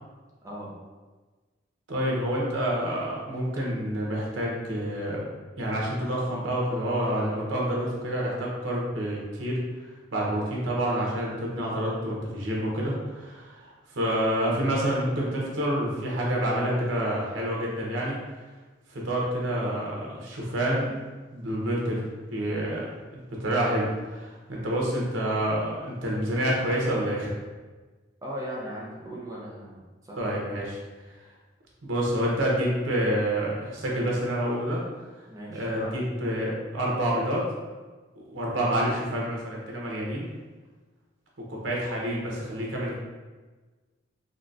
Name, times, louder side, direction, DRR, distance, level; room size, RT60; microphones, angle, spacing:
voice 1, 1.9-5.2 5.6-9.6 10.1-18.2 18.9-20.9 21.3-22.9 23.3-27.4 30.2-30.8 31.8-34.8 35.5-37.4 38.1-40.3 41.5-43.0, right 1 dB, 85° right, -3 dB, 0.8 m, -28 dB
voice 2, 28.2-30.2 35.3-35.9, equal, 15° right, -4 dB, 0.6 m, -38 dB
3.8 x 2.2 x 2.5 m, 1.3 s
head